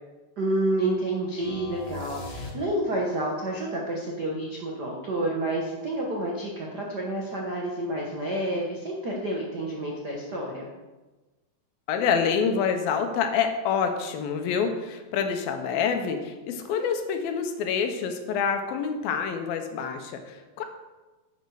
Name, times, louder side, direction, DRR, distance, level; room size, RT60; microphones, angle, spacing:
voice 1, 0.4-10.7, right 1 dB, 75° right, -2 dB, 0.9 m, -29 dB
sound 1, 1.4-3.1, left 2 dB, 30° left, 1.2 m, -39 dB
voice 2, 11.9-20.7, left 6 dB, 85° left, 6 dB, 2.8 m, -27 dB
11.0 x 8.0 x 4.8 m, 1.2 s
omnidirectional pair, 4.1 m